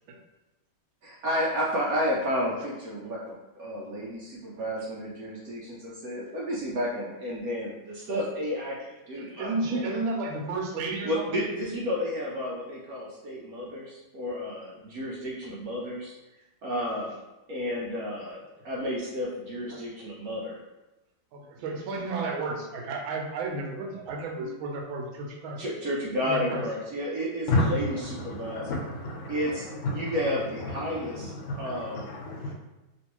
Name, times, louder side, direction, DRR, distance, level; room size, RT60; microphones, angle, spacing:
voice 1, 1.0-9.9 11.0-16.1 16.6-17.2 17.5-18.4 18.6-20.6 24.4-24.5 25.6-28.7 29.3-31.3 31.6-32.0, equal, 70° right, -4 dB, 0.8 m, -32 dB
voice 2, 9.2-11.4 19.7-19.8 21.3-25.6 26.2-26.6, right 3 dB, 90° right, 1 dB, 1.5 m, -32 dB
voice 3, 27.5-32.5, left 1 dB, 85° left, -1 dB, 1.5 m, -32 dB
3.1 x 3.0 x 2.9 m, 1.0 s
omnidirectional pair, 2.1 m